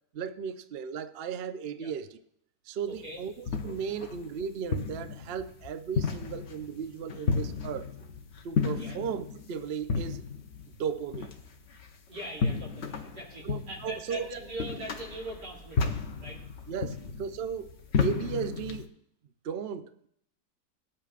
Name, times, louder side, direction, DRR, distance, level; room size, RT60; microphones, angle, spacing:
voice 1, 0.1-2.2 2.7-7.9 8.4-10.3 10.8-11.3 13.4-14.3 16.7-18.9 19.4-20.1, right 7 dB, 65° right, 0.6 m, -36 dB
voice 2, 2.9-3.2 8.8-9.0 12.1-16.7, right 1 dB, 90° right, 3.6 m, -41 dB
sound 1, 3.0-18.9, left 5 dB, 50° left, 1.0 m, -33 dB
20.0 x 8.7 x 2.5 m
omnidirectional pair, 1.8 m